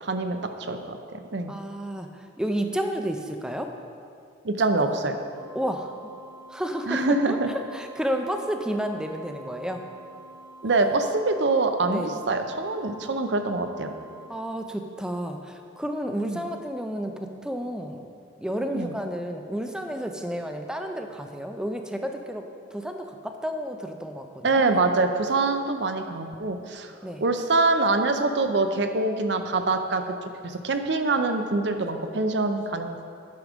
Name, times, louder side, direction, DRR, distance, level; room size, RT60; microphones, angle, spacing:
voice 1, 0.0-1.5 4.4-5.2 6.9-7.5 10.6-13.9 16.3-16.4 18.7-18.9 24.4-26.9 27.2-30.1 30.4-33.0, right 3 dB, 65° right, 7 dB, 0.6 m, -25 dB
voice 2, 1.5-3.7 5.5-5.9 6.5-9.8 11.9-12.1 14.3-18.1 18.4-22.5 22.7-24.6 27.0-27.2, equal, 5° right, 5 dB, 0.5 m, -31 dB
sound 1, 5.2-14.3, right 2 dB, 50° left, 1.6 m, -48 dB
9.4 x 6.3 x 5.1 m, 2.4 s
head